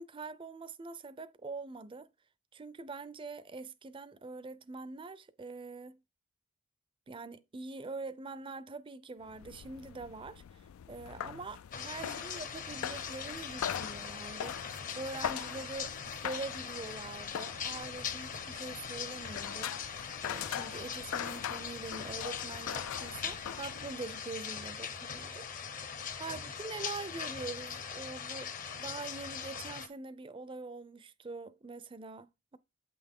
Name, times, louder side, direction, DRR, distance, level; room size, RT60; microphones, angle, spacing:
voice 1, 0.0-2.1 2.5-6.0 7.1-15.9 16.2-19.8 20.2-25.5 26.2-28.5 28.8-32.6, right 3 dB, 25° right, 0.4 m, -44 dB
sound 1, 9.2-24.1, left 9 dB, 90° left, 0.3 m, -42 dB
sound 2, 11.7-29.9, left 7 dB, 40° left, 0.8 m, -41 dB
8.3 x 5.9 x 3.6 m
head